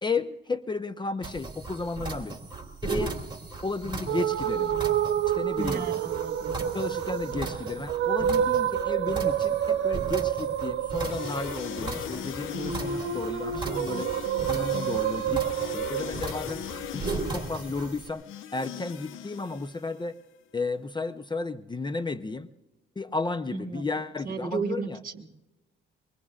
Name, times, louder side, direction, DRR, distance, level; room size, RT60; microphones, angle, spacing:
voice 1, 0.0-2.4 2.8-3.1 3.6-4.8 5.3-5.9 6.7-14.1 14.5-15.5 15.7-16.6 16.9-18.2 18.5-20.2 20.5-22.5 23.0-25.0, left 3 dB, 20° left, 12 dB, 0.7 m, -33 dB
sound 1, 1.2-18.1, right 3 dB, 25° right, 2.9 m, -37 dB
sound 2, 4.1-16.2, right 9 dB, 75° right, 0.9 m, -28 dB
voice 2, 5.6-6.7 23.5-25.3, right 5 dB, 45° right, 5 dB, 2.0 m, -35 dB
sound 3, 10.9-20.1, left 9 dB, 85° left, 0.8 m, -39 dB
23.5 x 22.0 x 2.5 m, 0.97 s
cardioid pair, 90°, 20 cm